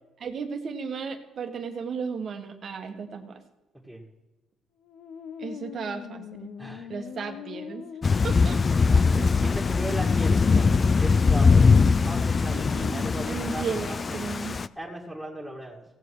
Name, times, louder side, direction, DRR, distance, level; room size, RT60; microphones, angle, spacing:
voice 1, 0.2-3.4 5.4-6.5 6.9-7.8 8.2-8.6 9.1-9.3 12.5-13.0 13.3-14.5, right 5 dB, 55° right, 7 dB, 1.4 m, -34 dB
sound 1, 4.8-13.3, left 8 dB, 80° left, 0.7 m, -41 dB
voice 2, 6.6-6.9 7.2-7.3 8.8-11.7 12.0-14.2 14.8-15.8, right 1 dB, ahead, -5 dB, 2.1 m, -37 dB
Thunder / Rain, 8.0-14.7, left 4 dB, 35° left, 0.4 m, -21 dB
16.5 x 7.5 x 4.7 m, 1.1 s
cardioid pair, 90°, 0 cm